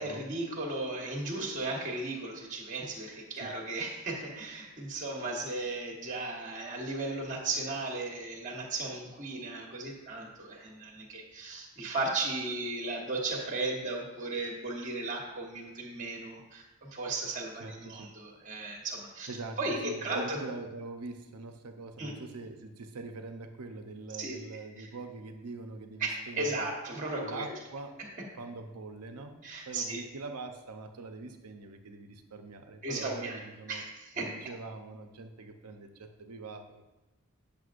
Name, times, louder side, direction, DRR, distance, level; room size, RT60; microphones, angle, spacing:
voice 1, 0.0-19.3 19.6-20.4 22.0-22.1 24.1-24.3 24.8-24.9 26.0-27.5 29.4-30.0 32.8-33.4 33.7-34.3, right 2 dB, 35° right, -1 dB, 1.3 m, -35 dB
voice 2, 17.5-18.1 19.3-26.7 27.2-28.0 28.4-29.4 29.7-33.9 34.1-36.8, right 3 dB, 90° right, 5 dB, 0.8 m, -43 dB
9.5 x 6.9 x 2.5 m, 1.0 s
head